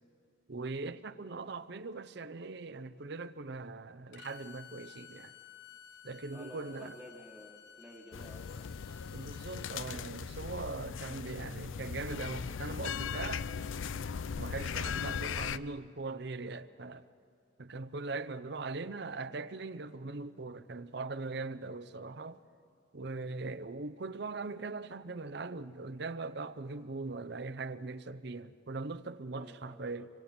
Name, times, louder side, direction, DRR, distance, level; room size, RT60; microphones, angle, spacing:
voice 1, 0.5-5.3 6.0-6.9 9.1-13.5 14.4-17.1 17.6-22.4 22.9-30.1, right 3 dB, 55° right, 0.7 m, -40 dB
Bowed string instrument, 4.1-9.8, left 9 dB, 60° left, 0.9 m, -54 dB
voice 2, 6.3-8.6 29.3-29.9, equal, 5° right, 1.4 m, -52 dB
sound 1, 8.1-15.6, left 6 dB, 75° left, 0.5 m, -38 dB
25.5 x 25.5 x 4.4 m
head